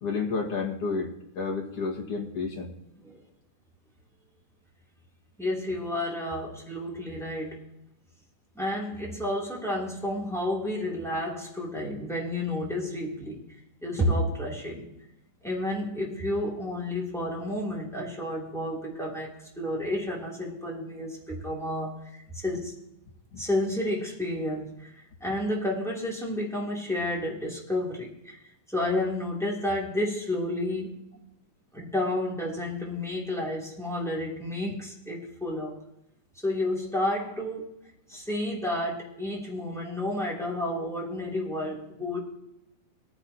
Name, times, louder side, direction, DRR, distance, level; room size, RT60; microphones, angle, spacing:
voice 1, 0.0-1.1 1.4-2.7 23.3-23.4, left 4 dB, 50° left, -1 dB, 2.6 m, -30 dB
voice 2, 5.4-7.6 8.5-13.4 13.8-14.9 15.4-22.7 23.3-24.9 25.2-28.4 28.7-30.9 31.7-35.8 36.4-37.7 38.1-42.2, left 1 dB, ahead, -4 dB, 2.5 m, -31 dB
20.0 x 10.0 x 2.9 m, 0.85 s
omnidirectional pair, 3.7 m